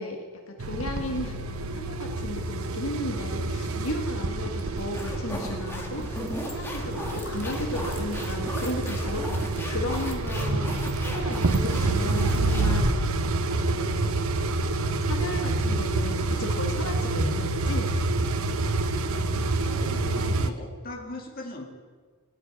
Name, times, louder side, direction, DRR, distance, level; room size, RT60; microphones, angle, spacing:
voice 1, 0.0-1.4 1.7-13.0 13.3-14.2 14.7-17.9, left 2 dB, 70° left, 3 dB, 1.6 m, -35 dB
sound 1, 0.6-20.5, right 2 dB, 75° right, 0.8 m, -28 dB
sound 2, 4.5-13.3, left 1 dB, 10° left, 1.6 m, -37 dB
Keyboard (musical), 10.4-13.3, equal, 50° right, 1.4 m, -39 dB
voice 2, 19.5-21.6, left 1 dB, 40° left, 1 dB, 2.0 m, -39 dB
17.5 x 6.9 x 9.6 m, 1.5 s
head